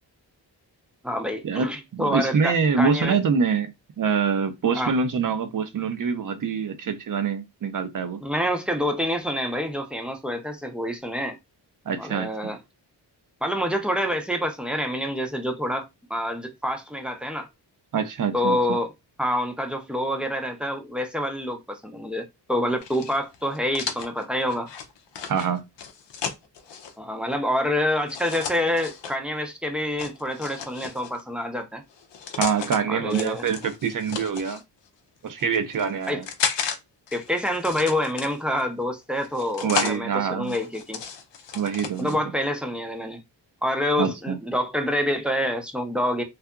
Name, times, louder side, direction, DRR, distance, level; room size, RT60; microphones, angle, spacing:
voice 1, 1.0-3.2 4.8-4.9 8.2-11.4 12.0-12.6 13.4-17.5 18.3-18.9 19.2-24.7 27.0-31.8 32.9-33.4 36.1-36.2 37.1-41.0 42.0-43.2 43.6-46.2, left 1 dB, ahead, 0.5 m, -27 dB
voice 2, 1.9-3.7 4.0-8.2 11.9-12.5 17.9-18.8 25.3-25.6 32.4-34.6 35.2-36.3 39.6-40.6 41.5-42.2 44.0-44.4, right 6 dB, 50° right, 0.5 m, -25 dB
sound 1, 22.8-26.9 28.1-29.2 30.0-31.2 31.9-32.8 33.1-34.6 35.3-36.8 37.1-38.6 39.2-40.0 40.4-42.1, left 7 dB, 80° left, 0.6 m, -33 dB
2.7 x 2.4 x 2.3 m
wide cardioid pair, 100°, 42 cm